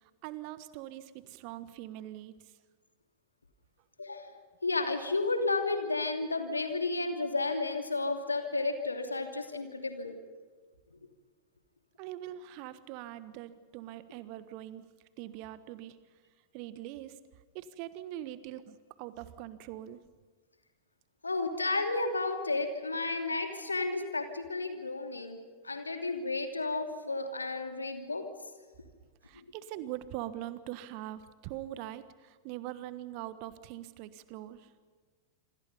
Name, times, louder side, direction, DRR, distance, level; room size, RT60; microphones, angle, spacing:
voice 1, 0.2-2.5 12.0-14.8 15.2-16.0 16.5-17.2 17.5-20.0 29.2-34.7, right 13 dB, 45° right, 14 dB, 1.3 m, -42 dB
voice 2, 4.0-10.1 10.9-11.0 21.2-25.4 25.6-28.2, left 3 dB, 80° left, 5 dB, 2.9 m, -32 dB
27.0 x 25.5 x 5.6 m, 1.5 s
figure-of-eight pair, 90°, 0 cm